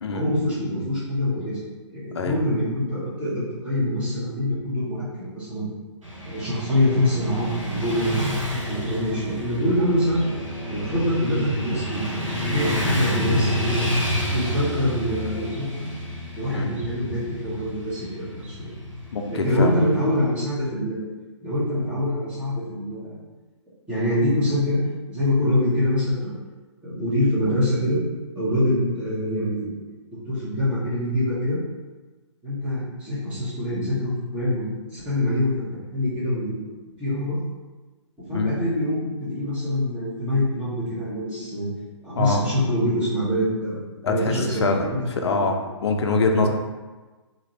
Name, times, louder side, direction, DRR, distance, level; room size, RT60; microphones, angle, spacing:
voice 1, 0.1-1.6 1.9-5.7 6.2-10.2 10.7-13.9 14.3-15.9 16.3-18.7 19.3-21.0 21.4-23.2 23.9-24.8 25.1-26.3 26.8-28.0 28.3-29.7 30.1-31.6 32.4-34.6 34.9-35.5 35.9-36.6 37.0-37.4 38.3-41.7 42.0-43.8 44.1-45.5 46.4-46.5, left 1 dB, 5° right, -11 dB, 1.0 m, -25 dB
Motorcycle / Traffic noise roadway noise, 6.0-20.1, equal, 90° right, 0.9 m, -29 dB
voice 2, 19.1-19.7 38.3-38.5 42.2-42.4 44.0-44.3 44.6-45.6 45.8-46.5, left 3 dB, 60° left, 3 dB, 0.5 m, -24 dB
2.6 x 2.5 x 3.0 m, 1.2 s
figure-of-eight pair, 135°, 16 cm